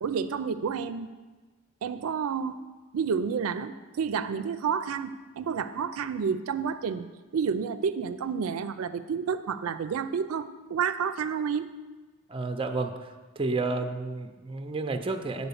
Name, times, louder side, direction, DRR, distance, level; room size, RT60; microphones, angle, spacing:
voice 1, 0.0-1.1 1.8-2.6 2.9-7.1 7.3-11.7, right 6 dB, 85° right, 11 dB, 0.4 m, -30 dB
voice 2, 12.3-15.5, right 3 dB, 25° right, 7 dB, 0.5 m, -31 dB
8.9 x 4.4 x 7.0 m, 1.3 s
head